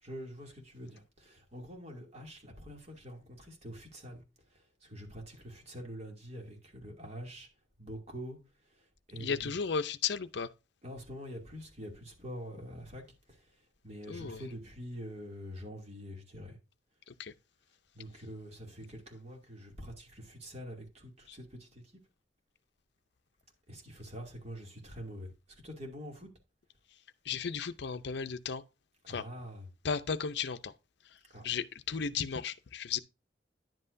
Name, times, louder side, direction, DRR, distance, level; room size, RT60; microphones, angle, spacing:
voice 1, 0.0-7.5 7.8-9.5 10.8-16.6 17.9-22.0 23.7-26.3 29.0-29.7 31.3-31.5, equal, 35° right, 2.5 m, -46 dB
voice 2, 9.2-10.5 14.1-14.4 17.1-17.3 27.3-28.6 29.1-29.2 29.8-30.7 31.4-33.0, left 6 dB, 65° left, 0.6 m, -34 dB
10.5 x 7.8 x 2.6 m
head